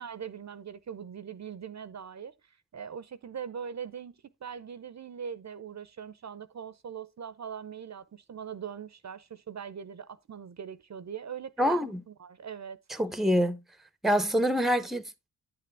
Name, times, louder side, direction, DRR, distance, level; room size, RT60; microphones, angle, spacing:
voice 1, 0.0-2.3 2.7-12.8, right 7 dB, 45° right, 0.6 m, -41 dB
voice 2, 11.6-12.0 12.9-13.6 14.0-15.3, equal, ahead, 0.7 m, -26 dB
9.9 x 6.9 x 3.4 m
cardioid pair, 60°, 39 cm